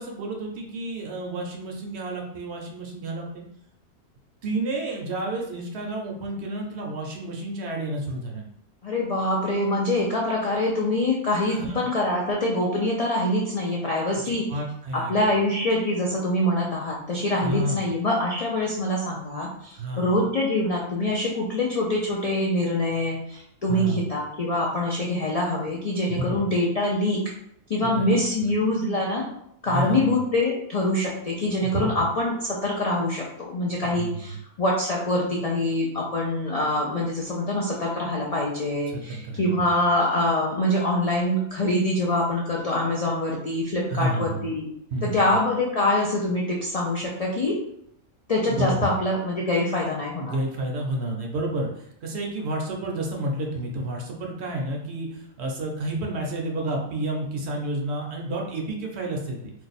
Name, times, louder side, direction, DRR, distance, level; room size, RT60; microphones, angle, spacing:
voice 1, 0.0-3.4 4.4-8.5 11.5-11.8 14.1-15.2 17.4-17.9 19.7-20.1 23.7-24.1 26.1-26.4 27.8-28.5 29.7-30.1 31.6-31.9 34.0-34.1 38.9-39.7 43.9-44.4 44.9-45.2 48.5-48.9 50.2-59.5, right 1 dB, 65° right, 1 dB, 0.8 m, -30 dB
voice 2, 8.8-14.5 14.9-27.2 27.7-29.2 29.6-44.7 45.0-47.6 48.3-50.4, left 1 dB, 65° left, -3 dB, 0.3 m, -25 dB
2.6 x 2.3 x 4.0 m, 0.73 s
omnidirectional pair, 1.3 m